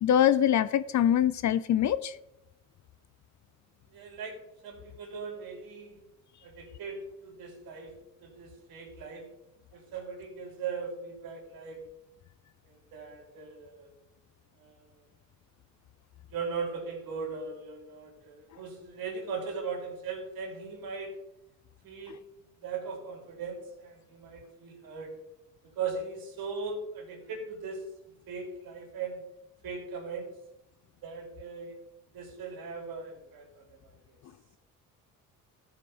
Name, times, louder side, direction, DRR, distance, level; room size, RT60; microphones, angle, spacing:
voice 1, 0.0-2.2, left 10 dB, 50° left, 15 dB, 0.5 m, -24 dB
voice 2, 3.9-4.4 4.6-6.1 6.4-7.9 8.2-9.2 9.7-11.8 12.7-13.9 14.6-14.9 16.3-21.1 21.8-25.1 25.7-27.8 28.3-29.2 29.6-30.3 31.0-31.8 32.1-34.2, right 5 dB, 75° right, 1 dB, 3.8 m, -39 dB
14.0 x 6.7 x 4.4 m, 0.86 s
cardioid pair, 85°, 36 cm